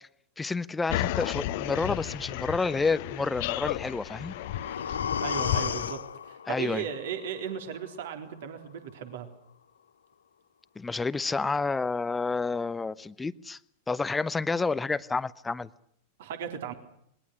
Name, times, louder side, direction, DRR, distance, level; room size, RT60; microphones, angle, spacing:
voice 1, 0.4-4.3 6.5-6.8 10.8-13.6 13.9-15.7, left 4 dB, 10° left, 17 dB, 1.0 m, -29 dB
sound 1, 0.9-5.9, left 14 dB, 50° left, 1.2 m, -33 dB
sound 2, 3.9-7.9 8.3-8.4, left 7 dB, 70° left, 1.0 m, -34 dB
voice 2, 5.2-9.3 16.2-16.7, right 8 dB, 55° right, 7 dB, 3.8 m, -36 dB
27.5 x 22.0 x 6.4 m, 0.70 s
figure-of-eight pair, 90°, 0 cm